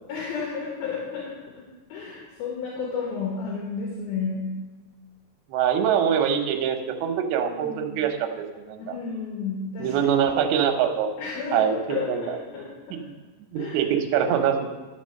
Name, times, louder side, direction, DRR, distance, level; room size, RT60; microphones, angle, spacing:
voice 1, 0.1-1.3 1.9-4.4 7.4-7.9 8.8-9.9 11.2-12.7 13.6-13.8, left 5 dB, 75° left, -4 dB, 3.3 m, -32 dB
voice 2, 5.5-9.0 9.8-11.1 11.5-12.2 12.9-13.0 13.5-14.7, right 8 dB, 85° right, 5 dB, 2.8 m, -24 dB
10.5 x 6.1 x 6.4 m, 1.2 s
omnidirectional pair, 4.4 m